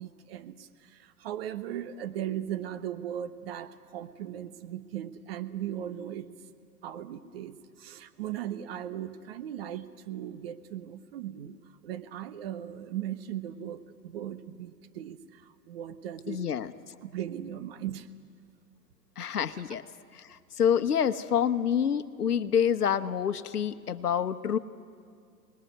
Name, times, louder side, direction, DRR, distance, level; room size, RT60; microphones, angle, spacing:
voice 1, 0.0-6.3 6.8-11.6 11.8-16.4 17.0-18.1, right 11 dB, 35° right, 10 dB, 1.2 m, -38 dB
voice 2, 16.3-16.7 19.2-19.8 20.1-24.6, left 8 dB, 70° left, 11 dB, 1.2 m, -27 dB
28.5 x 20.0 x 9.4 m, 2.3 s
figure-of-eight pair, 120°, 48 cm